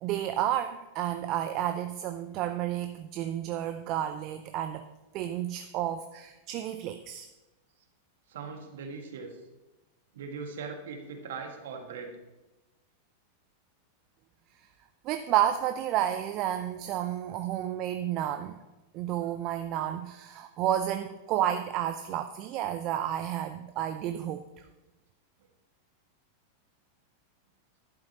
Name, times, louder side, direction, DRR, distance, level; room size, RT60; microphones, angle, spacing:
voice 1, 0.0-4.9 5.1-7.3 15.0-18.6 18.9-24.5, right 11 dB, 40° right, 10 dB, 0.5 m, -31 dB
voice 2, 8.3-9.4 10.1-12.1, right 5 dB, 60° right, 4 dB, 1.7 m, -40 dB
11.5 x 11.5 x 2.9 m, 1.1 s
figure-of-eight pair, 90°, 0 cm